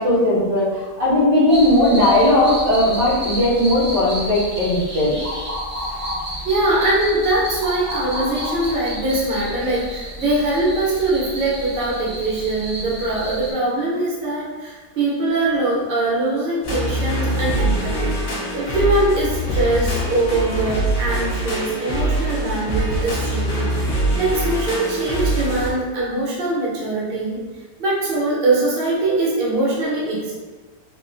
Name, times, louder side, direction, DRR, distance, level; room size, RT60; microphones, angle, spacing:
voice 1, 0.0-5.1, left 1 dB, 85° right, -10 dB, 2.2 m, -17 dB
sound 1, 1.5-13.5, left 1 dB, 20° right, 0.4 m, -29 dB
voice 2, 6.0-18.2 18.5-27.4 27.8-30.3, right 2 dB, 40° right, -6 dB, 0.8 m, -22 dB
sound 2, 16.6-25.7, right 1 dB, 55° left, 0.6 m, -23 dB
4.1 x 2.5 x 2.6 m, 1.3 s
omnidirectional pair, 1.8 m